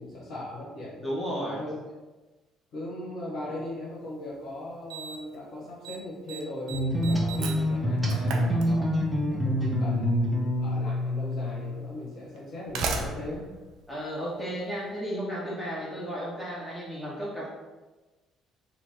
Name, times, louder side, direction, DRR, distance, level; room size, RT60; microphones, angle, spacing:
voice 1, 0.0-1.7 2.7-8.9 9.3-13.5, left 1 dB, 60° left, -6 dB, 1.2 m, -38 dB
voice 2, 1.0-1.6 13.9-17.5, equal, 15° left, -6 dB, 1.4 m, -33 dB
Slam, 4.1-4.2 4.9-5.4 5.6-6.0 6.3-9.2 10.3-10.4 11.3-11.4 12.3-14.7, right 4 dB, 65° right, 0.4 m, -36 dB
sound 1, 6.7-11.9, equal, 20° right, 0.7 m, -26 dB
2.9 x 2.6 x 3.6 m, 1.2 s
hypercardioid pair, 50°, 0 cm